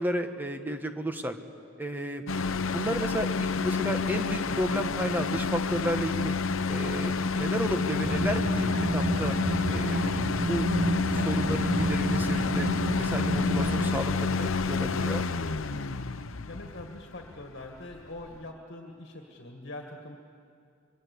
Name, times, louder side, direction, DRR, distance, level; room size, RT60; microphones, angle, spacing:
voice 1, 0.0-1.3 1.8-2.2 2.7-6.4 6.7-7.1 7.4-8.7 8.9-9.4 9.7-10.7 11.1-12.7 13.0-15.2, equal, 10° right, 6 dB, 1.3 m, -32 dB
sound 1, 2.3-18.4, left 4 dB, 80° left, 0.8 m, -29 dB
sound 2, 8.0-14.0, right 1 dB, 50° right, 1.1 m, -30 dB
sound 3, 9.3-11.7 12.0-13.1 13.3-13.4 13.7-14.1, equal, 25° right, 7.6 m, -50 dB
voice 2, 16.5-20.2, left 2 dB, 55° left, 2 dB, 2.0 m, -43 dB
26.0 x 22.5 x 8.4 m, 2.4 s
head